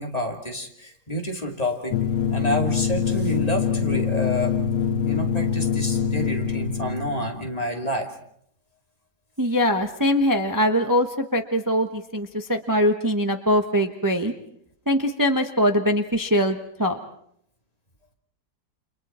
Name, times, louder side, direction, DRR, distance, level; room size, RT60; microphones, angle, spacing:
voice 1, 0.0-2.0 2.3-8.1, left 1 dB, 20° left, 2 dB, 2.6 m, -29 dB
sound 1, 1.9-7.3, left 7 dB, 85° left, 2.0 m, -24 dB
voice 2, 9.4-14.3 14.9-17.0, equal, 15° right, 5 dB, 0.9 m, -22 dB
30.0 x 27.0 x 4.4 m, 0.69 s
omnidirectional pair, 1.9 m